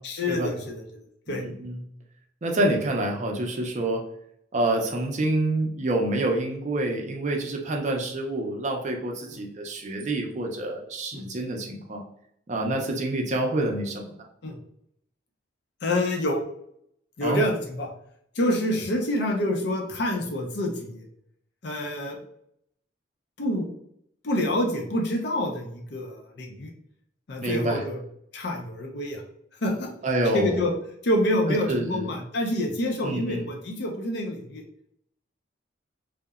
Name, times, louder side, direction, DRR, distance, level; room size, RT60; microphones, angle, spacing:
voice 1, 0.0-1.4 9.3-9.4 11.1-11.3 14.4-14.6 15.8-16.4 17.2-17.9 18.4-21.0 21.6-22.2 23.4-23.7 24.2-26.7 27.3-28.0 28.3-29.2 29.6-29.9 30.3-30.7 31.0-34.6, left 1 dB, 60° left, 1 dB, 0.5 m, -27 dB
voice 2, 1.3-1.8 2.4-4.0 4.5-12.0 12.5-14.1 17.2-17.5 27.4-27.8 30.0-30.7 31.7-32.1 33.0-33.5, right 1 dB, 40° right, 1 dB, 0.4 m, -27 dB
2.8 x 2.1 x 2.3 m, 0.71 s
head